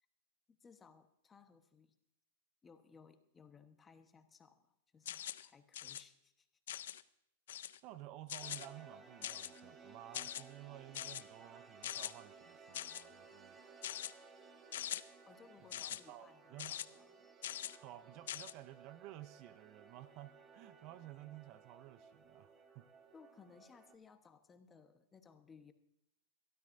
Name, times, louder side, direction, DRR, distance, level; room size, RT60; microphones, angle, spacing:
voice 1, 0.5-1.9 2.6-6.5 15.2-17.3 23.1-25.7, left 5 dB, 15° left, 8 dB, 1.1 m, -62 dB
sound 1, 5.1-5.5 5.7-6.0 6.7-7.0 7.5-7.8 8.3-8.7 9.2-9.6 10.1-10.4 10.9-11.2 11.8-12.1 12.7-13.0 13.8-14.1 14.7-15.0 15.7-16.0 16.6-16.8 17.4-17.8 18.3-18.5, left 11 dB, 75° left, 0.5 m, -43 dB
voice 2, 7.8-13.6 15.7-16.8 17.8-22.9, right 14 dB, 45° right, 15 dB, 0.6 m, -54 dB
sound 2, 8.4-24.0, right 5 dB, 25° right, 1.7 m, -59 dB
22.5 x 13.0 x 2.6 m, 0.83 s
hypercardioid pair, 140°, 0 cm